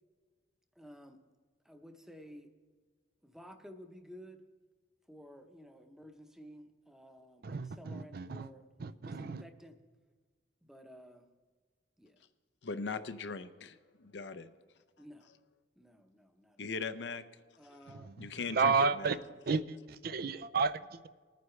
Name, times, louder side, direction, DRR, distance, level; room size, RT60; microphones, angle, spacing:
voice 1, 0.7-1.2 1.6-2.5 3.2-4.4 5.1-8.7 9.0-9.8 10.6-11.3 12.0-12.2 13.0-13.2 15.0-15.3 15.8-16.8 17.6-18.1, equal, 5° right, 6 dB, 0.8 m, -53 dB
voice 2, 7.4-8.5 8.8-9.4 18.5-19.2 19.5-21.1, right 4 dB, 55° right, 13 dB, 0.4 m, -32 dB
voice 3, 12.6-14.5 16.6-17.2 18.2-19.2, left 4 dB, 70° left, 10 dB, 0.6 m, -40 dB
21.0 x 9.3 x 3.2 m, 1.4 s
head